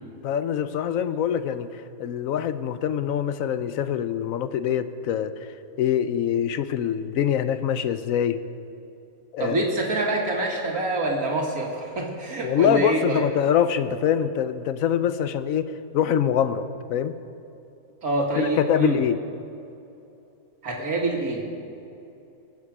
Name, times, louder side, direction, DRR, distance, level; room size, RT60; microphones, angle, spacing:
voice 1, 0.2-5.3 5.8-8.4 9.3-9.7 12.4-17.2 18.4-19.2, left 9 dB, 75° left, 12 dB, 1.0 m, -24 dB
voice 2, 9.4-13.2 18.0-19.0 20.6-21.4, right 2 dB, 80° right, 0 dB, 2.4 m, -26 dB
22.0 x 8.4 x 4.9 m, 2.8 s
omnidirectional pair, 1.5 m